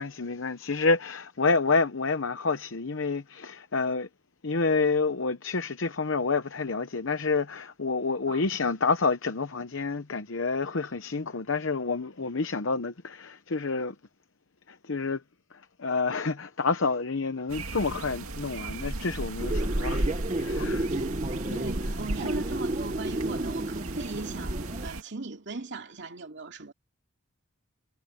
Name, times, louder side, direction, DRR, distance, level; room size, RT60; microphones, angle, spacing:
voice 1, 0.0-4.1 4.4-14.0 14.7-15.2 15.5-20.8 21.4-21.6 22.2-22.3, left 4 dB, 60° left, 0.9 m, -28 dB
sound 1, 17.5-25.0, right 1 dB, 80° right, 2.3 m, -34 dB
sound 2, 19.4-24.9, right 1 dB, 30° right, 0.8 m, -32 dB
voice 2, 20.6-21.1 21.6-24.6 24.8-26.7, right 3 dB, 55° right, 2.6 m, -38 dB
head